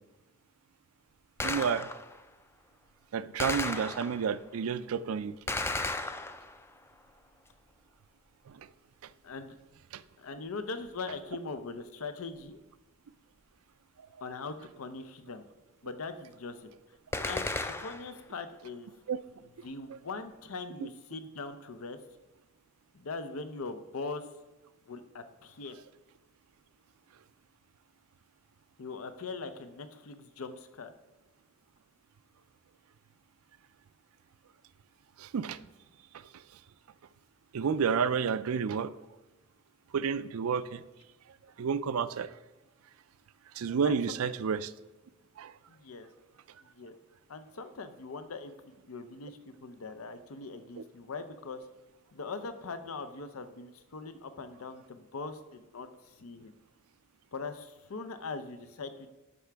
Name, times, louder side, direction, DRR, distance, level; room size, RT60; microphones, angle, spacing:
Gunshot gunfire, 1.4-2.2 3.4-4.4 5.5-6.7 17.1-18.2, left 2 dB, 10° left, 0.3 m, -34 dB
voice 1, 1.4-1.9 3.1-5.3 8.5-8.7 9.0-9.1 9.9-10.0 19.1-19.2 19.9-20.0 35.2-35.6 36.1-36.4 37.5-38.9 39.9-40.8 41.6-42.3 43.5-44.7 45.4-45.5, right 6 dB, 85° right, 15 dB, 0.4 m, -30 dB
voice 2, 9.2-9.6 10.2-12.6 14.2-15.4 15.8-16.7 17.2-18.9 19.6-22.0 22.9-24.2 24.9-25.7 28.8-30.9 43.8-44.3 45.7-46.1 46.8-47.0 47.3-51.6 52.1-56.5 57.3-59.1, left 4 dB, 85° left, 10 dB, 0.6 m, -41 dB
12.0 x 5.8 x 3.4 m, 1.1 s
head